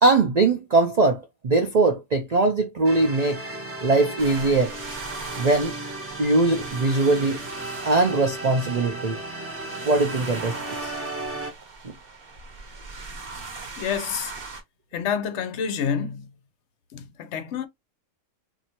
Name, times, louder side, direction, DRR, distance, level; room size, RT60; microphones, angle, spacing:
voice 1, 0.0-3.4 3.8-4.7 5.4-5.7 6.2-7.4 7.8-9.2 9.9-10.9, right 3 dB, 85° right, 0.3 m, -21 dB
sound 1, 2.8-11.5, right 2 dB, 10° right, 0.8 m, -35 dB
sound 2, 4.2-14.6, right 4 dB, 45° right, 1.1 m, -40 dB
voice 2, 13.8-14.3 14.9-16.3 16.9-17.7, left 7 dB, 60° left, 0.8 m, -28 dB
4.2 x 2.7 x 2.8 m
omnidirectional pair, 1.5 m